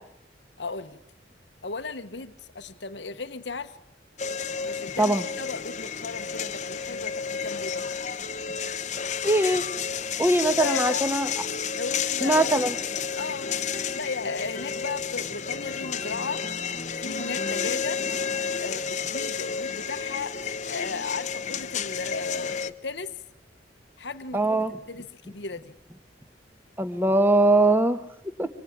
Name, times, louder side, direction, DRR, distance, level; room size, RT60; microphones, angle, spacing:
voice 1, 0.6-1.0 1.6-3.7 4.6-7.8 10.4-11.0 11.7-12.5 13.2-13.5 13.9-16.4 17.0-18.0 18.6-23.1 24.0-25.7, left 4 dB, 80° left, 9 dB, 1.3 m, -35 dB
sound 1, 4.2-22.7, left 6 dB, 40° left, 1.1 m, -31 dB
voice 2, 9.2-9.6 10.2-11.3 12.2-12.7 24.3-24.8 26.8-28.0 28.4-28.5, right 2 dB, 10° right, 10 dB, 1.6 m, -21 dB
26.0 x 24.5 x 8.8 m, 0.77 s
head